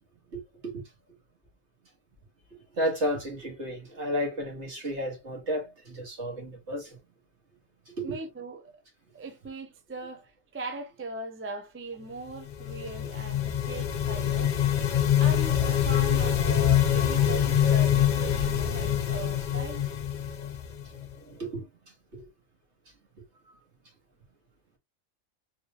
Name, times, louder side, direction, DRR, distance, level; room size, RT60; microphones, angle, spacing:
voice 1, 2.8-7.0 8.0-8.1 20.4-20.5 21.3-21.6 22.2-22.3, equal, 55° right, 1.9 m, -32 dB
voice 2, 8.0-8.7 9.1-14.6 15.1-19.8, right 2 dB, 20° right, 0.4 m, -40 dB
sound 1, 12.4-21.1, left 10 dB, 50° left, 0.5 m, -25 dB
4.4 x 3.2 x 2.3 m
omnidirectional pair, 1.4 m